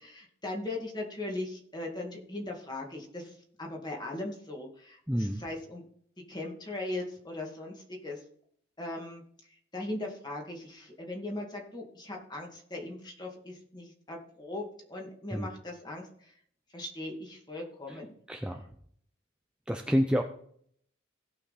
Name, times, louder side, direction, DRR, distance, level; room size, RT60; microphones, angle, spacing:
voice 1, 0.0-5.8 6.3-8.2 8.8-9.2 9.7-14.6 14.9-16.3 16.7-18.1, left 2 dB, 20° left, 0 dB, 2.1 m, -39 dB
voice 2, 5.1-5.4 15.3-15.5 18.3-18.6 19.7-20.2, equal, 5° right, 3 dB, 0.6 m, -28 dB
17.0 x 5.9 x 4.2 m, 0.63 s
head